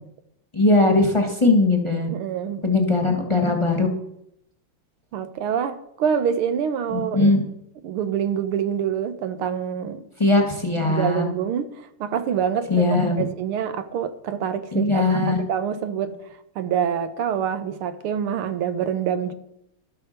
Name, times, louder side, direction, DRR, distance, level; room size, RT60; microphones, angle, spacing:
voice 1, 0.5-2.1 2.6-3.9 6.9-7.4 10.2-11.3 12.7-13.2 14.7-15.4, left 2 dB, 15° left, 1.4 m, -19 dB
voice 2, 2.1-2.6 5.1-7.4 7.8-10.1 10.8-12.9 13.2-19.3, right 8 dB, 85° right, 1.8 m, -26 dB
12.5 x 8.2 x 6.6 m
omnidirectional pair, 2.3 m